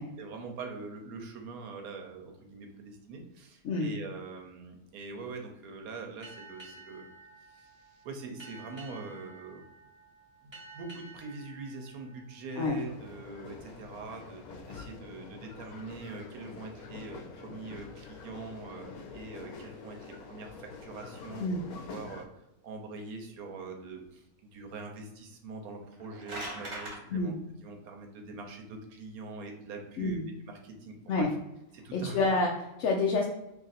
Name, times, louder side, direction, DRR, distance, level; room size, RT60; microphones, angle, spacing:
voice 1, 0.2-7.0 7.5-9.6 10.4-21.5 21.9-22.3 22.6-27.3 27.6-31.3 31.7-32.2, right 3 dB, 75° right, 3 dB, 1.2 m, -43 dB
Boat Water vehicle, 6.2-13.3, right 2 dB, 25° right, 0.6 m, -52 dB
sound 1, 12.7-22.3, left 4 dB, 85° left, 1.1 m, -46 dB
sound 2, 25.8-27.0, right 1 dB, 55° right, 1.3 m, -39 dB
voice 2, 31.9-33.2, left 3 dB, 65° left, -1 dB, 0.8 m, -28 dB
2.9 x 2.5 x 4.0 m, 0.90 s
omnidirectional pair, 1.6 m